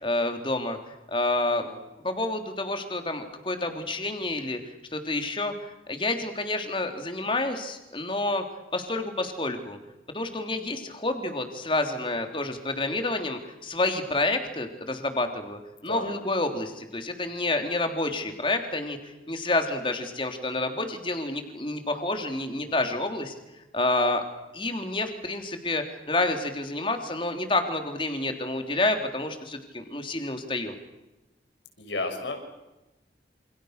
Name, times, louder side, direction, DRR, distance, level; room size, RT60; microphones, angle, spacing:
voice 1, 0.0-1.7 2.0-4.6 4.9-8.4 8.7-9.8 10.1-23.3 23.7-24.2 24.5-30.7, left 2 dB, 30° left, 6 dB, 3.4 m, -29 dB
voice 2, 31.8-32.4, left 2 dB, 90° left, 5 dB, 6.8 m, -33 dB
28.5 x 28.5 x 6.7 m, 1.0 s
head